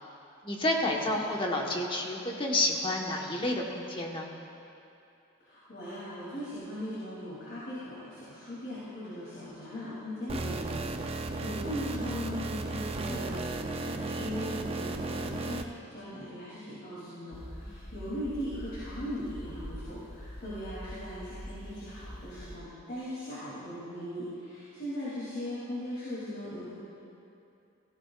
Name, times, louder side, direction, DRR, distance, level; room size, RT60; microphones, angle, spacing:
voice 1, 0.4-4.3 17.7-17.8, left 1 dB, 25° left, 0 dB, 1.2 m, -30 dB
voice 2, 5.4-26.7, equal, 55° left, -9 dB, 2.9 m, -39 dB
sound 1, 10.3-15.6, right 2 dB, 30° right, 0.5 m, -35 dB
sound 2, 17.3-22.6, equal, 90° left, 2.6 m, -44 dB
17.5 x 15.5 x 2.4 m, 2.7 s
head